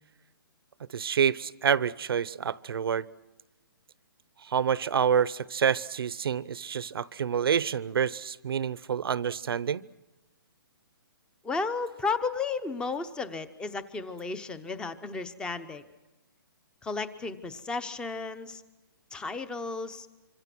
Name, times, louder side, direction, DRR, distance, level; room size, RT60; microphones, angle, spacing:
voice 1, 0.9-3.1 4.4-9.8, right 7 dB, 75° right, 20 dB, 0.8 m, -27 dB
voice 2, 11.4-15.8 16.8-18.6 19.1-20.1, left 4 dB, 5° left, 14 dB, 0.9 m, -33 dB
26.0 x 25.5 x 6.1 m, 1.1 s
hypercardioid pair, 155°, 12 cm